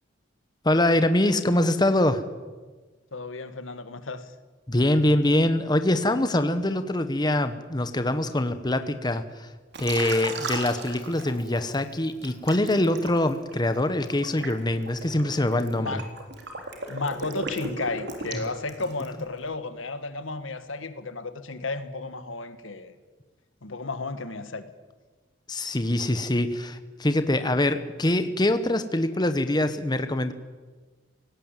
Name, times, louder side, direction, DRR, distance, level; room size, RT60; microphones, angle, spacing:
voice 1, 0.6-2.2 4.7-9.5 9.8-15.9 25.5-30.3, left 1 dB, 20° left, 1.0 m, -24 dB
voice 2, 3.1-4.3 15.8-16.1 16.6-22.9 23.6-24.7, left 3 dB, 85° left, 1.6 m, -33 dB
Liquid, 9.7-11.7 12.2-19.2, right 3 dB, 60° right, 3.5 m, -36 dB
18.5 x 17.0 x 9.0 m
head